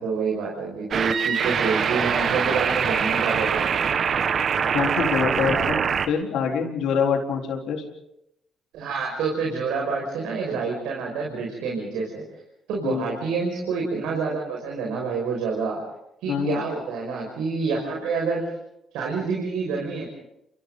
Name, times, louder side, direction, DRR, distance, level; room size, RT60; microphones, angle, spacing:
voice 1, 0.0-3.9 8.7-12.2 12.7-15.8 16.2-18.5 18.9-20.1, right 4 dB, 80° right, -1 dB, 5.7 m, -27 dB
sound 1, 0.9-6.1, right 6 dB, 60° right, 1.7 m, -23 dB
voice 2, 4.7-5.8 6.1-7.8 12.8-13.1 16.3-16.7, left 6 dB, 75° left, 2 dB, 4.1 m, -25 dB
29.0 x 26.5 x 4.0 m, 0.83 s
supercardioid pair, 65°, 0 cm